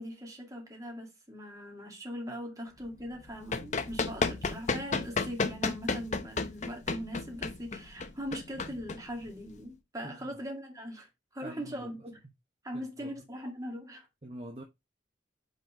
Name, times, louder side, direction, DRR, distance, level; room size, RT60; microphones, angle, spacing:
voice 1, 0.0-12.1 12.6-14.1, equal, 20° right, 2.1 m, -40 dB
Run, 3.1-9.6, left 4 dB, 40° left, 0.6 m, -33 dB
voice 2, 10.0-10.4 11.4-12.1 12.7-13.2 14.2-14.6, right 1 dB, 35° right, 0.9 m, -45 dB
5.2 x 4.0 x 4.9 m
head